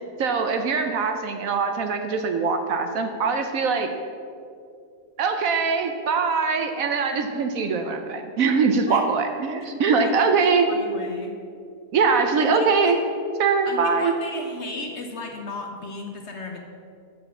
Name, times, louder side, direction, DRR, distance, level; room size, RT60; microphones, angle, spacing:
voice 1, 0.2-3.9 5.2-10.9 11.9-13.0 13.4-14.1, right 5 dB, 65° right, 6 dB, 1.0 m, -22 dB
voice 2, 10.7-11.4 12.3-12.9 13.7-16.6, left 3 dB, 50° left, 2 dB, 0.9 m, -35 dB
7.3 x 6.8 x 5.9 m, 2.4 s
omnidirectional pair, 1.7 m